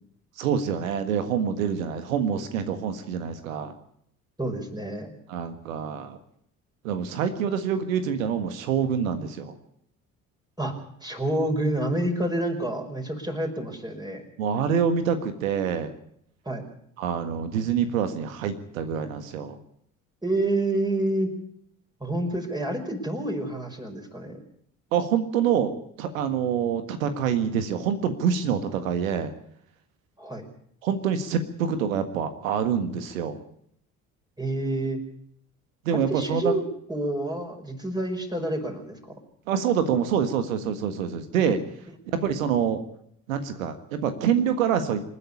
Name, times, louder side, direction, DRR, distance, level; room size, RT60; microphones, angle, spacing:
voice 1, 0.4-3.7 5.3-6.2 6.8-9.5 14.4-15.9 17.0-19.6 24.9-25.7 26.0-29.3 30.8-33.4 35.8-36.5 39.5-41.6 42.1-42.8 43.3-45.0, right 7 dB, 70° right, 10 dB, 1.7 m, -26 dB
voice 2, 4.4-5.1 10.6-10.7 11.0-14.2 16.4-16.6 20.2-21.3 22.0-24.4 30.2-30.5 34.4-35.0 35.9-36.6 36.9-39.0, right 1 dB, 10° right, 3 dB, 5.1 m, -28 dB
27.5 x 9.9 x 9.9 m, 0.70 s
figure-of-eight pair, 50°, 41 cm